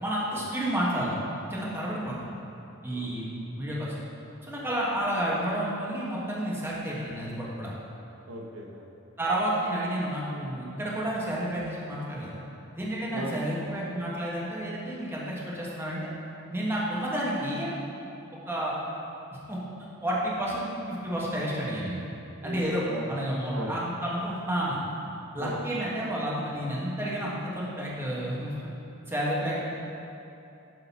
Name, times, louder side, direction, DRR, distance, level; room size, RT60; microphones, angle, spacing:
voice 1, 0.0-1.2 1.5-2.3 2.8-4.0 4.4-7.7 9.2-12.4 12.7-16.1 16.5-17.7 18.5-18.8 19.5-19.6 20.0-22.1 22.4-22.8 23.1-24.8 25.3-28.5 29.1-29.6, right 1 dB, 10° right, -6 dB, 1.2 m, -30 dB
voice 2, 2.9-3.3 8.2-8.9 13.1-13.4 22.4-23.1 23.5-23.7 25.4-25.6, equal, 70° right, -1 dB, 0.9 m, -38 dB
11.0 x 3.9 x 4.1 m, 2.8 s
head